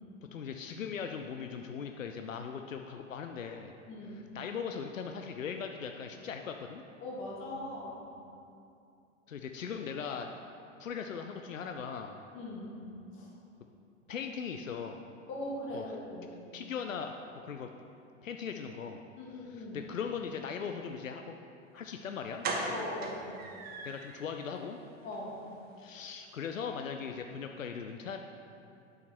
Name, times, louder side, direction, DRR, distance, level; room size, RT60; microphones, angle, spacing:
voice 1, 0.3-3.7 4.3-6.8 9.3-10.3 10.8-12.2 14.1-15.0 15.7-15.8 16.5-17.7 18.2-19.0 19.5-21.2 21.7-22.4 23.8-24.8 25.8-28.2, left 6 dB, 80° left, 5 dB, 0.6 m, -39 dB
voice 2, 3.9-4.3 7.0-8.1 12.3-12.8 13.1-13.3 15.3-16.4 19.2-19.9 22.7-23.3 25.0-25.4, left 1 dB, 30° left, -4 dB, 2.2 m, -40 dB
sound 1, 21.8-21.9 22.4-24.2 24.6-24.7 25.0-25.2 25.4-25.5, right 2 dB, 25° right, 1.0 m, -37 dB
8.7 x 6.5 x 4.4 m, 2.6 s
figure-of-eight pair, 95°, 39 cm